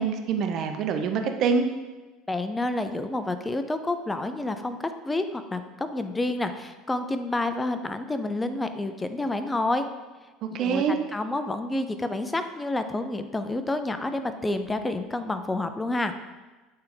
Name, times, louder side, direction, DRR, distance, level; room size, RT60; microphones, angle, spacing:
voice 1, 0.0-1.7 10.5-11.0, right 5 dB, 50° right, 6 dB, 0.7 m, -25 dB
voice 2, 2.3-9.9 10.6-10.8 11.1-16.1, left 2 dB, 10° left, 9 dB, 0.5 m, -29 dB
8.5 x 3.4 x 3.9 m, 1.2 s
supercardioid pair, 115°, 0 cm